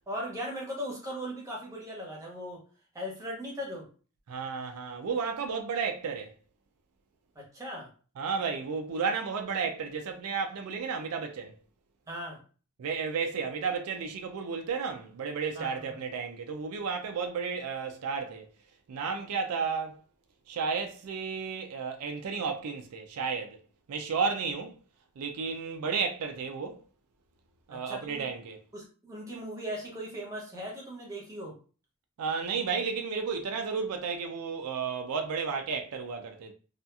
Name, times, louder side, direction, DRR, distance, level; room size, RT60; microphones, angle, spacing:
voice 1, 0.1-2.6 2.9-3.8 7.3-7.9 12.1-12.4 15.5-15.7 27.7-28.3 28.7-31.5, equal, 15° right, 0.8 m, -38 dB
voice 2, 4.3-6.3 8.2-11.5 12.8-18.5 18.9-20.0 20.5-23.6 23.9-24.8 25.2-26.8 27.7-28.6 32.2-36.5, right 5 dB, 80° right, 0.4 m, -32 dB
2.7 x 2.4 x 2.2 m
head